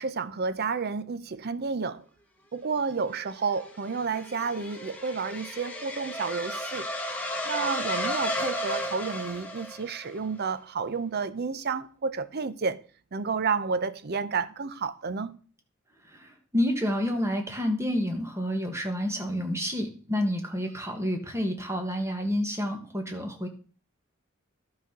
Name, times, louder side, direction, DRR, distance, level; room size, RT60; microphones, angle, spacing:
voice 1, 0.0-2.0 2.5-6.9 7.4-12.8 13.1-15.4, right 5 dB, 50° right, 0.6 m, -31 dB
sound 1, 3.1-10.2, left 1 dB, 10° left, 1.6 m, -34 dB
voice 2, 16.1-23.5, equal, 15° right, 1.6 m, -29 dB
12.0 x 4.2 x 6.0 m
head